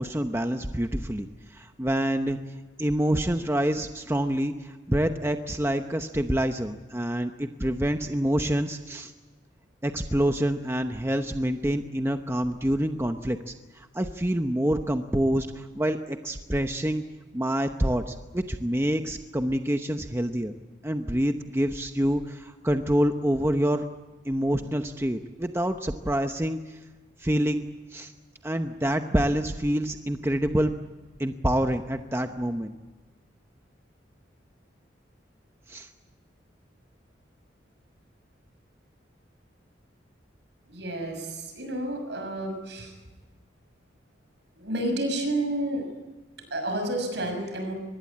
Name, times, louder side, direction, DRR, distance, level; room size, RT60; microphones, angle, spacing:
voice 1, 0.0-2.4 2.8-9.1 9.8-17.0 17.3-20.5 20.8-23.8 24.2-26.8 27.2-27.6 27.9-28.1 28.4-30.7 31.2-32.7 35.7-35.9, equal, 15° right, 6 dB, 0.9 m, -27 dB
voice 2, 40.7-42.9 44.6-45.8 46.5-47.7, right 1 dB, 65° right, 5 dB, 6.6 m, -30 dB
24.5 x 20.5 x 8.6 m, 1.2 s
head